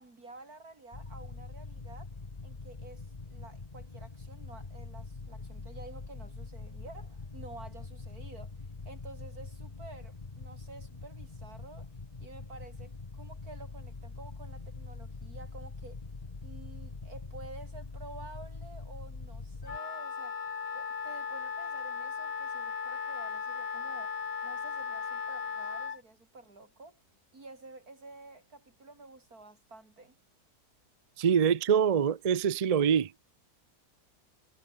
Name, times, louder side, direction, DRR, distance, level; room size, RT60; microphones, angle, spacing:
voice 1, 0.0-2.1 2.4-8.5 8.9-11.9 12.2-16.0 16.4-20.4 20.7-24.1 24.4-27.0 27.3-30.2, right 2 dB, 60° right, 5.5 m, -50 dB
sound 1, 0.9-19.8, left 3 dB, 25° left, 1.4 m, -44 dB
Wind instrument woodwind instrument, 19.6-26.0, left 6 dB, 70° left, 0.3 m, -36 dB
voice 2, 31.2-33.1, right 7 dB, 80° right, 0.3 m, -25 dB
omnidirectional pair, 1.7 m